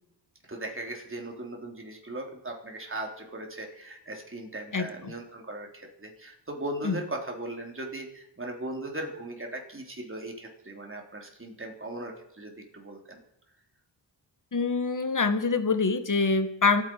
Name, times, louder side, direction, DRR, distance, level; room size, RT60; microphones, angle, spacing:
voice 1, 0.5-13.2, right 1 dB, 30° right, 1 dB, 3.6 m, -38 dB
voice 2, 4.7-5.1 6.8-7.0 14.5-16.8, left 4 dB, 45° left, 9 dB, 1.8 m, -25 dB
26.0 x 9.5 x 4.7 m, 0.85 s
cardioid pair, 70°, 44 cm